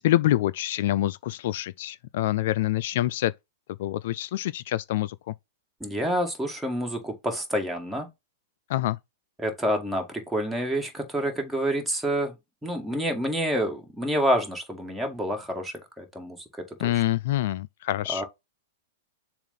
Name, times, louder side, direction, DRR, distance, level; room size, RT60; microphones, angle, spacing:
voice 1, 0.0-3.3 3.7-5.3 8.7-9.0 16.8-18.2, left 14 dB, 60° left, 0.3 m, -26 dB
voice 2, 5.8-8.1 9.4-12.3 12.6-16.4 16.8-17.0 18.1-18.2, equal, 5° right, 1.9 m, -28 dB
7.1 x 2.5 x 5.4 m
figure-of-eight pair, 105°, 0 cm